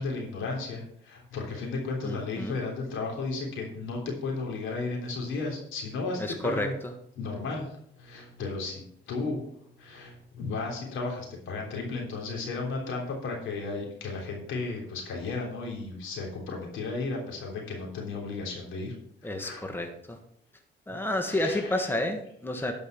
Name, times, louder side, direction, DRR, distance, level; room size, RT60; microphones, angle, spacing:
voice 1, 0.0-6.8 7.2-18.9 19.2-19.7 21.2-21.9 22.5-22.7, left 3 dB, 85° left, 0 dB, 3.4 m, -34 dB
voice 2, 2.0-2.5 6.2-6.7 19.2-20.2 20.9-22.7, left 1 dB, 10° left, 5 dB, 1.5 m, -30 dB
11.5 x 5.5 x 5.8 m, 0.70 s
cardioid pair, 90°, 20 cm